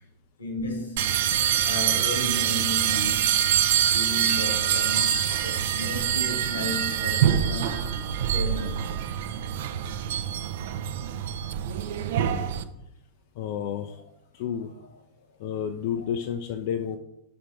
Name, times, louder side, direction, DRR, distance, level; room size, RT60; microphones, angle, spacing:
voice 1, 0.4-1.2 1.6-3.4 3.9-8.0 8.3-9.0 16.0-16.1, equal, 75° left, 1.5 m, -34 dB
sound 1, 1.0-12.6, right 10 dB, 55° right, 0.4 m, -25 dB
voice 2, 13.4-14.0 14.3-14.7 15.4-17.0, left 8 dB, 50° left, 0.4 m, -30 dB
5.0 x 4.3 x 4.7 m
figure-of-eight pair, 90°, 0 cm